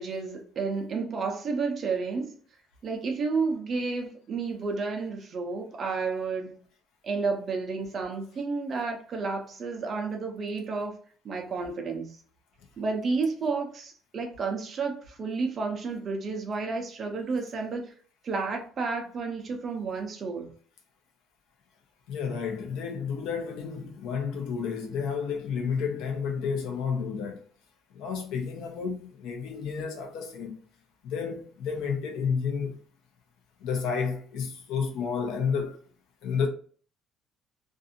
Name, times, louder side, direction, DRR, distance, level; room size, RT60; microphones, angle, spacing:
voice 1, 0.0-2.4 2.8-6.6 7.0-10.9 11.2-12.2 12.8-17.9 18.2-20.5, right 4 dB, 30° right, 0.6 m, -31 dB
voice 2, 22.1-27.4 27.9-30.5 31.0-32.7 33.6-35.8 36.2-36.5, left 6 dB, 85° left, 0.8 m, -31 dB
2.6 x 2.5 x 2.6 m
cardioid pair, 170°, 0 cm